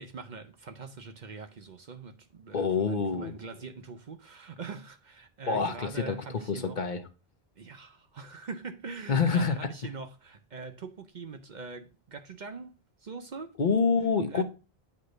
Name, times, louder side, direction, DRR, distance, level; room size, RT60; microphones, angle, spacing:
voice 1, 0.0-6.8 7.6-13.5 14.3-14.4, right 4 dB, 50° right, 0.7 m, -43 dB
voice 2, 2.5-3.3 5.5-6.2 6.5-7.0 9.1-9.6 13.6-14.4, left 5 dB, 50° left, 0.9 m, -26 dB
8.3 x 3.0 x 6.3 m
omnidirectional pair, 1.1 m